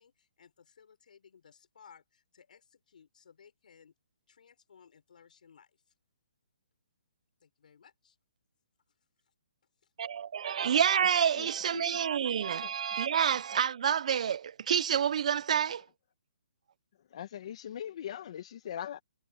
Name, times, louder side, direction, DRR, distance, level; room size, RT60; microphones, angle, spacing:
voice 1, 0.0-3.9 4.3-5.9 7.4-8.2 9.8-9.9, left 7 dB, 60° left, 5.6 m, -60 dB
voice 2, 10.0-15.8, right 8 dB, 50° right, 0.4 m, -28 dB
voice 3, 11.0-12.0 12.6-12.7 15.6-15.8 17.1-19.0, left 10 dB, 40° left, 1.2 m, -42 dB
hypercardioid pair, 165°, 5 cm